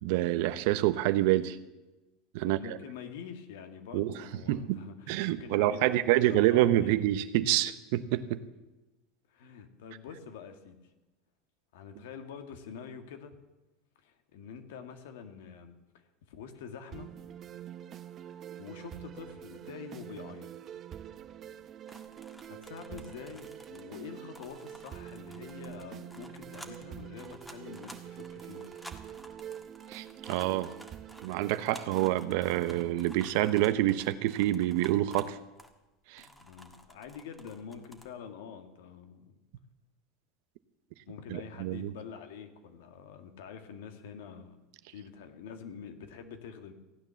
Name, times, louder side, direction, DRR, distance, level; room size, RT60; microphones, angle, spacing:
voice 1, 0.0-1.6 2.3-2.8 3.9-4.1 4.5-4.8 5.1-8.4 29.9-30.7 31.2-35.4 36.1-36.3 41.3-41.9, right 14 dB, 70° right, 13 dB, 0.8 m, -27 dB
voice 2, 2.4-7.1 9.3-10.9 11.7-13.4 14.0-17.1 18.2-20.8 22.4-28.7 36.2-39.4 41.1-44.6 44.9-46.7, left 7 dB, 80° left, 6 dB, 1.8 m, -46 dB
sound 1, 16.9-32.9, right 10 dB, 40° right, 0.8 m, -46 dB
sound 2, 21.9-24.1 24.4-35.9 36.2-38.1, equal, 5° left, 1.6 m, -52 dB
15.5 x 8.9 x 7.0 m, 1.1 s
supercardioid pair, 105°, 0 cm